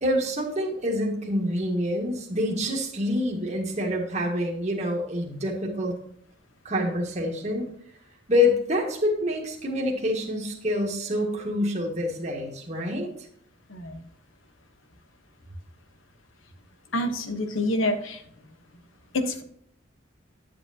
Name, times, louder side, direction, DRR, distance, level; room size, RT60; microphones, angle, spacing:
voice 1, 0.0-5.9 6.7-7.7 8.3-13.1, left 1 dB, 35° right, -1 dB, 1.6 m, -26 dB
voice 2, 13.7-14.0 16.9-18.2 19.1-19.4, left 1 dB, 85° left, 7 dB, 1.1 m, -27 dB
10.0 x 7.5 x 2.8 m, 0.66 s
head